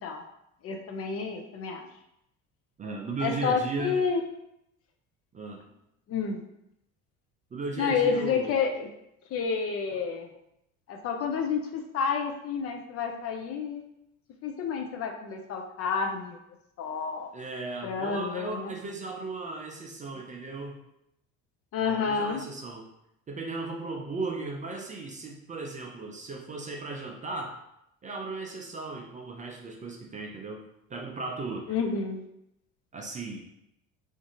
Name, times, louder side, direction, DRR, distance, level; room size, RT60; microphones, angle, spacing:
voice 1, 0.6-1.8 3.2-4.2 6.1-6.4 7.8-8.9 9.3-10.3 10.9-13.8 14.4-16.4 16.8-17.3 17.8-18.7 21.7-22.4 31.7-32.2, left 5 dB, 40° left, 3 dB, 0.4 m, -29 dB
voice 2, 2.8-4.0 5.3-5.6 7.5-8.6 9.9-10.0 17.3-20.8 21.8-22.9 23.3-27.6 28.0-30.6 30.9-31.8 32.9-33.5, right 3 dB, 20° right, 1 dB, 0.4 m, -36 dB
2.5 x 2.5 x 2.8 m, 0.81 s
hypercardioid pair, 65°, 38 cm